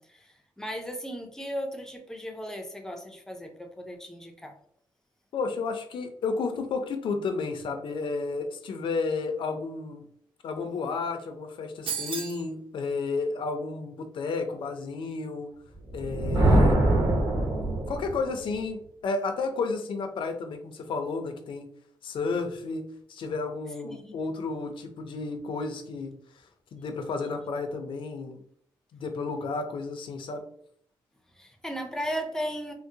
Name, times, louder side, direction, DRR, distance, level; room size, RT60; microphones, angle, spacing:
voice 1, 0.0-4.5 16.5-16.6 23.8-24.1 31.3-32.7, equal, 5° left, 3 dB, 0.5 m, -36 dB
voice 2, 5.3-10.1 10.4-15.5 15.9-16.8 17.9-21.6 22.0-22.8 23.1-26.1 26.7-28.4 28.9-30.4, left 4 dB, 65° left, 6 dB, 0.5 m, -32 dB
sound 1, 11.9-12.5, right 7 dB, 75° right, 0.4 m, -33 dB
Thunder, 15.9-18.3, right 1 dB, 40° right, 0.9 m, -23 dB
3.6 x 2.0 x 2.7 m, 0.65 s
wide cardioid pair, 145°, 9 cm